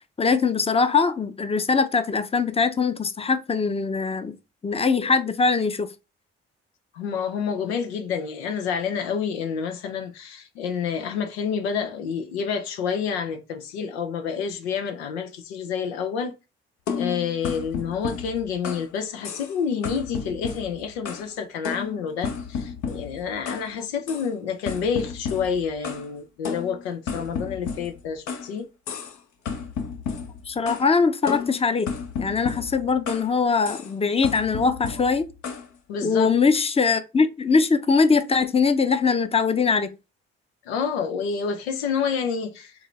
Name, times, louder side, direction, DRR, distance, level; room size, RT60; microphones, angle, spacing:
voice 1, 0.2-4.4 4.6-5.9 30.5-31.9 32.2-35.2 36.0-39.9, left 4 dB, 20° left, 0.7 m, -22 dB
voice 2, 6.9-16.3 16.9-28.7 35.9-36.3 40.7-42.7, left 6 dB, 85° left, 0.6 m, -28 dB
sound 1, 16.9-18.9 19.2-19.6 19.8-21.3 21.6-23.7 24.1-24.3 24.7-26.1 26.4-28.5 28.9-29.2 29.5-30.9 31.3-33.3 33.6-33.9 34.2-35.7, left 6 dB, 65° left, 0.9 m, -33 dB
4.5 x 3.3 x 3.2 m
hypercardioid pair, 50°, 31 cm